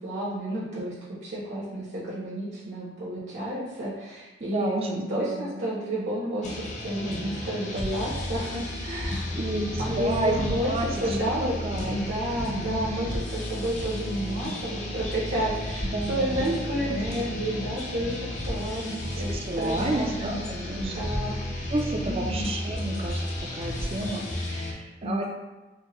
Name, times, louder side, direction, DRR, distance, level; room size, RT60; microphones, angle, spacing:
voice 1, 0.0-9.3 9.8-11.5 11.9-19.3 19.5-21.4 22.0-22.5 25.0-25.2, right 1 dB, 70° right, -8 dB, 0.9 m, -31 dB
voice 2, 4.4-5.6 9.3-12.0 12.4-13.2 15.8-17.0 19.2-21.0 21.7-23.2 23.5-25.2, right 2 dB, 35° right, 1 dB, 0.4 m, -31 dB
sound 1, 6.4-24.7, left 1 dB, 40° left, 0.6 m, -33 dB
4.4 x 2.1 x 3.0 m, 1.2 s
head